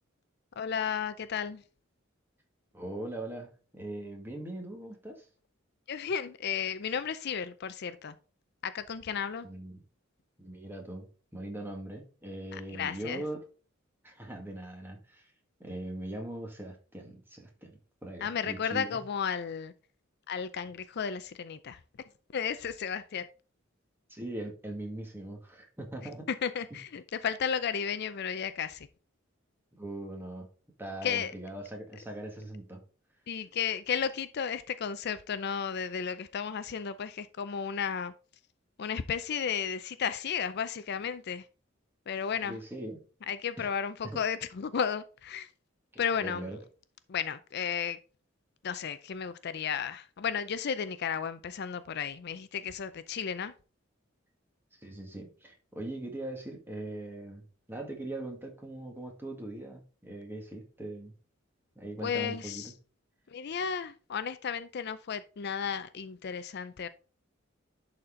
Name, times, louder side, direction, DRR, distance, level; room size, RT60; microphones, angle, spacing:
voice 1, 0.6-1.6 5.9-8.1 8.6-9.5 12.5-13.2 18.2-19.7 20.3-21.8 22.3-23.3 26.3-28.9 31.0-31.3 33.3-38.1 38.8-41.5 42.1-42.6 43.3-45.5 46.0-46.5 47.1-48.0 48.6-53.5 62.0-62.7 63.3-66.9, left 7 dB, 55° left, 0.5 m, -33 dB
voice 2, 2.7-5.3 9.4-9.7 10.4-13.4 14.0-15.3 15.6-19.0 24.1-26.3 26.7-26.8 29.7-30.5 30.8-32.8 42.4-43.0 43.6-43.8 44.0-44.2 45.9-46.6 54.8-61.1 61.8-62.7, right 1 dB, 10° right, 1.9 m, -41 dB
11.0 x 4.2 x 3.8 m
head